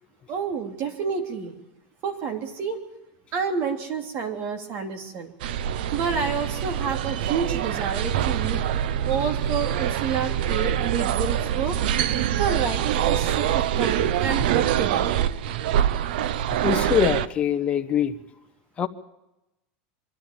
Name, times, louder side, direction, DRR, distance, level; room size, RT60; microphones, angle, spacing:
voice 1, 0.3-1.5 2.0-2.8 3.3-5.3 5.9-8.6 9.1-11.8 12.4-15.3, right 6 dB, 45° right, 3.2 m, -29 dB
sound 1, 5.4-17.3, right 10 dB, 80° right, 0.8 m, -25 dB
voice 2, 16.6-18.2 18.8-18.9, left 8 dB, 25° left, 1.3 m, -23 dB
24.5 x 13.0 x 8.9 m
supercardioid pair, 145°, 5 cm